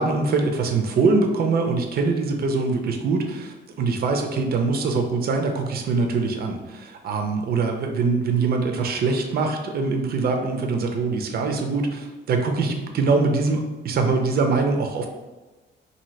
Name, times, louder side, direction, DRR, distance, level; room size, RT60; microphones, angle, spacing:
voice 1, 0.0-15.1, right 4 dB, 50° right, 4 dB, 0.5 m, -23 dB
2.7 x 2.7 x 3.1 m, 1.2 s
cardioid pair, 90°, 20 cm